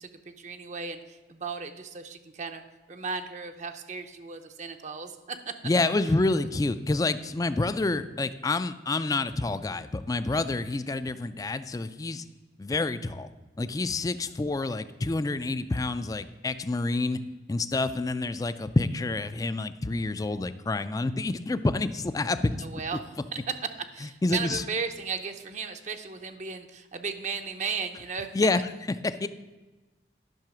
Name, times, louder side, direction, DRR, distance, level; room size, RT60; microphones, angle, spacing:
voice 1, 0.0-2.6 2.9-5.5 22.6-23.0 23.3-23.6 23.9-28.4, right 5 dB, 40° right, 7 dB, 0.6 m, -35 dB
voice 2, 5.6-12.2 12.6-13.3 13.6-17.2 17.5-22.7 24.2-24.6 28.3-28.6 29.0-29.3, left 2 dB, 20° left, 12 dB, 0.3 m, -28 dB
10.5 x 5.7 x 6.1 m, 1.2 s
head